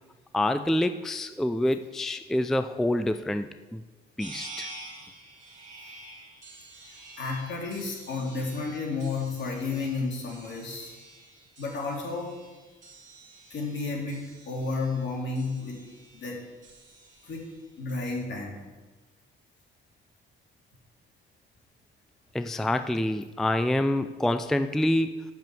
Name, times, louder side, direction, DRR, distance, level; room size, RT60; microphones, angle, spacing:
voice 1, 0.3-3.8 4.2-4.7 22.3-25.2, left 1 dB, ahead, 10 dB, 0.3 m, -27 dB
sound 1, 4.2-18.2, right 2 dB, 40° right, 2.4 m, -49 dB
voice 2, 7.2-11.0 11.6-12.3 13.5-15.8 16.1-16.4 17.2-17.5 17.8-18.6, left 3 dB, 65° left, -1 dB, 2.7 m, -32 dB
6.8 x 6.2 x 7.5 m, 1.3 s
cardioid pair, 90°, 20 cm